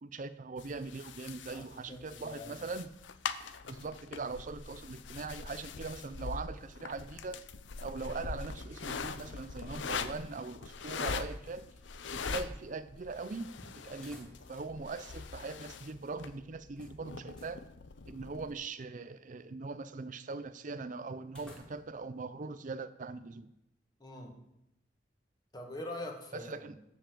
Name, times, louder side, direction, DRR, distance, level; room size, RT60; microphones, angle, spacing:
voice 1, 0.0-2.9 3.7-7.4 7.8-11.7 12.1-17.6 18.1-23.5 26.3-26.8, right 3 dB, 45° right, 13 dB, 0.5 m, -41 dB
sound 1, 0.6-18.5, left 5 dB, 85° left, 0.7 m, -42 dB
voice 2, 1.5-2.6 24.0-24.3 25.5-26.5, left 1 dB, 25° left, 1 dB, 2.0 m, -43 dB
sound 2, 9.1-9.5 9.8-9.9 13.9-14.8 15.1-15.2 16.8-17.6 21.2-22.1, equal, 5° left, 2.6 m, -56 dB
14.0 x 5.5 x 7.5 m, 0.85 s
head